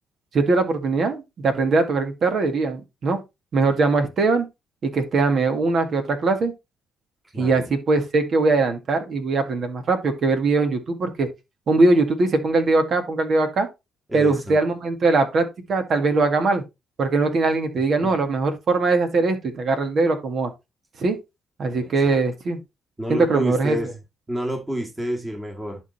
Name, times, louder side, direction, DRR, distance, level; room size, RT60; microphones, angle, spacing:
voice 1, 0.3-3.2 3.5-4.5 4.8-6.5 7.4-11.3 11.7-13.7 14.1-16.6 17.0-20.5 21.0-21.2 21.6-22.6 23.1-23.8, right 3 dB, 55° right, 2.1 m, -21 dB
voice 2, 7.3-7.7 14.1-14.6 18.0-18.1 21.6-22.2 23.0-23.9 24.3-25.8, equal, 15° right, 2.2 m, -29 dB
11.0 x 4.0 x 4.2 m
cardioid pair, 90°, 0 cm